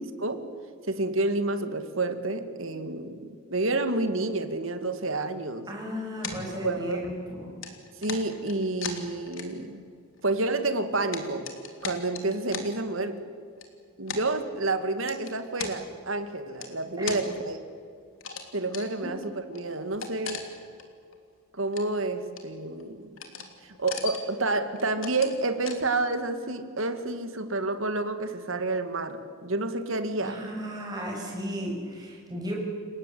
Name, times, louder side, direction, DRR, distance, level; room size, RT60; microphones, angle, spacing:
voice 1, 0.9-5.7 6.5-7.0 8.0-9.8 10.2-11.5 11.8-13.2 14.0-17.6 18.5-20.4 21.5-23.1 23.6-30.4, right 2 dB, 75° right, 9 dB, 2.2 m, -29 dB
voice 2, 5.7-7.5 17.0-17.1 30.2-32.5, equal, 20° right, -1 dB, 7.1 m, -35 dB
sound 1, 6.2-7.2 7.6-9.8 10.1-10.2 10.8-12.7 13.5-13.6 14.1-14.2 15.0-15.7 16.6-17.3 18.1-18.4 18.7-18.9 19.2-19.3 19.5-20.8 21.1-21.2 21.6-22.0 22.4-22.8 23.2-23.5 23.7-24.3 24.8-25.4 25.6-25.8, left 5 dB, 75° left, 3.3 m, -38 dB
29.5 x 17.5 x 8.5 m, 2.3 s
head